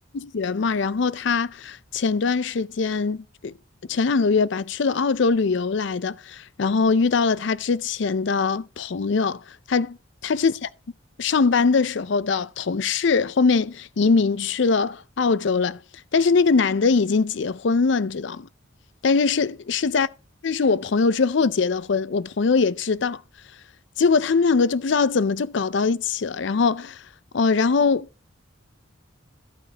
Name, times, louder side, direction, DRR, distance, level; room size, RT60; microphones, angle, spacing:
voice 1, 0.1-3.5 3.9-9.4 9.7-10.0 10.2-10.7 11.2-15.8 16.1-18.5 19.0-20.1 20.4-23.2 24.0-27.0 27.3-28.1, left 4 dB, 60° left, 0.5 m, -22 dB
12.5 x 9.1 x 2.9 m
head